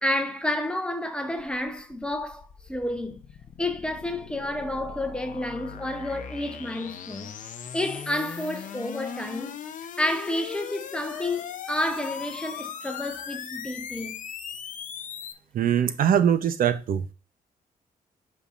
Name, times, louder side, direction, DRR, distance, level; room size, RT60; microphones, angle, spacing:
voice 1, 0.0-3.2 3.6-7.3 7.7-9.6 10.0-14.2, left 1 dB, 5° left, 0.8 m, -30 dB
sound 1, 1.4-15.3, left 8 dB, 60° left, 0.7 m, -39 dB
voice 2, 15.5-17.1, right 9 dB, 75° right, 0.8 m, -22 dB
8.5 x 5.7 x 2.5 m
wide cardioid pair, 180°, 15 cm